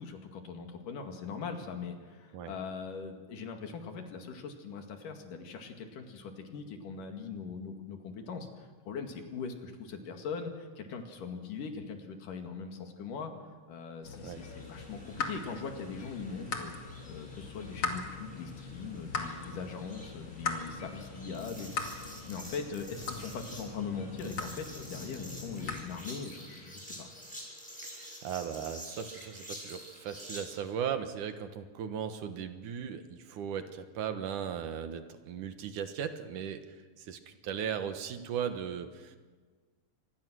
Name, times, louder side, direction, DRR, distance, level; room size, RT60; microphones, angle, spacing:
voice 1, 0.0-13.3 13.7-16.7 17.1-27.1, left 5 dB, 75° left, 4 dB, 3.7 m, -41 dB
Waterdrops with churchbells in the background, 14.0-25.8, left 4 dB, 45° left, 3.1 m, -40 dB
sound 1, 14.3-30.6, equal, ahead, 6.6 m, -49 dB
voice 2, 27.8-39.2, right 8 dB, 75° right, 8 dB, 2.7 m, -37 dB
26.0 x 20.5 x 6.3 m, 1.5 s
omnidirectional pair, 3.8 m